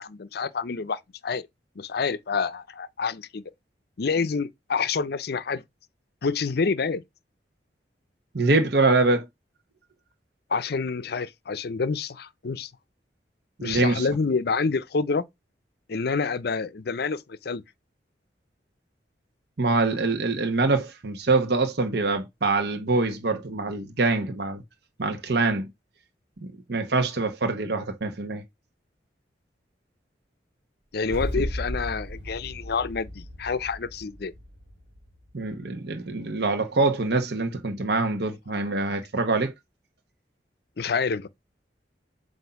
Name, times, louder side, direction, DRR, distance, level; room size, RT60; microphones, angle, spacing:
voice 1, 0.0-1.5 1.8-3.4 4.0-5.6 6.2-7.0 10.5-12.7 13.6-15.3 15.9-17.6 30.9-34.3 40.8-41.3, left 4 dB, 60° left, 0.5 m, -28 dB
voice 2, 8.3-9.2 13.6-14.1 19.6-24.6 25.0-25.7 26.4-28.4 35.3-39.5, right 3 dB, 65° right, 1.0 m, -24 dB
sound 1, 31.0-35.3, equal, 90° right, 1.5 m, -35 dB
7.8 x 2.7 x 5.7 m
head